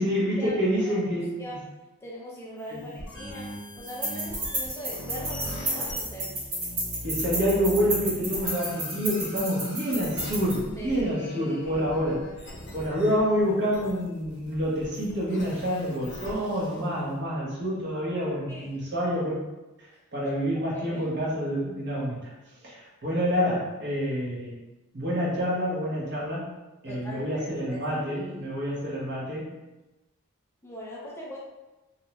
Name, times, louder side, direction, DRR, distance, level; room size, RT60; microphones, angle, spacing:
voice 1, 0.0-1.3 2.7-2.9 7.0-12.2 12.7-19.4 20.1-22.3 22.6-24.6 24.9-26.5 26.8-29.5, equal, 55° right, -6 dB, 0.9 m, -27 dB
voice 2, 0.8-1.6 2.0-6.4 10.8-11.9 18.5-18.9 20.7-21.0 26.9-28.5 30.6-31.4, equal, 10° left, -4 dB, 0.3 m, -41 dB
sound 1, 2.6-17.0, equal, 55° left, 0.6 m, -41 dB
sound 2, 3.9-10.5, right 1 dB, 80° right, 1.3 m, -31 dB
2.6 x 2.1 x 2.9 m, 1.0 s
head